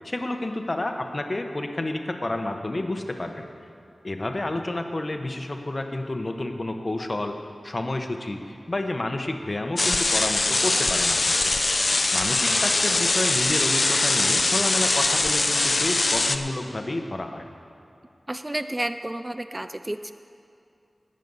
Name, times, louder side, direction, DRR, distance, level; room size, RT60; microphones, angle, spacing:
voice 1, 0.0-3.5 4.0-7.4 7.6-11.4 12.1-17.5, left 2 dB, 40° left, 5 dB, 0.9 m, -30 dB
sound 1, 9.8-16.4, left 3 dB, 55° left, 0.6 m, -22 dB
voice 2, 18.3-20.1, right 1 dB, 20° right, 10 dB, 0.3 m, -31 dB
18.5 x 6.5 x 5.5 m, 2.5 s
wide cardioid pair, 65°, 0 cm